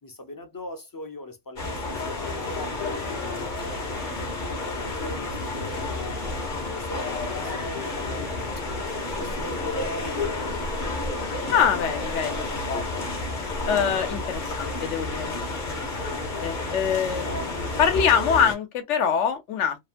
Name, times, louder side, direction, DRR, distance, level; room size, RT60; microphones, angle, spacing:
voice 1, 0.0-3.5 4.0-6.1 6.7-8.6 9.0-10.7, left 1 dB, 25° left, 0.4 m, -41 dB
sound 1, 1.6-18.5, left 2 dB, 45° left, 0.8 m, -30 dB
voice 2, 11.5-13.0 13.7-19.8, left 7 dB, 70° left, 1.1 m, -25 dB
2.8 x 2.1 x 2.5 m
omnidirectional pair, 1.3 m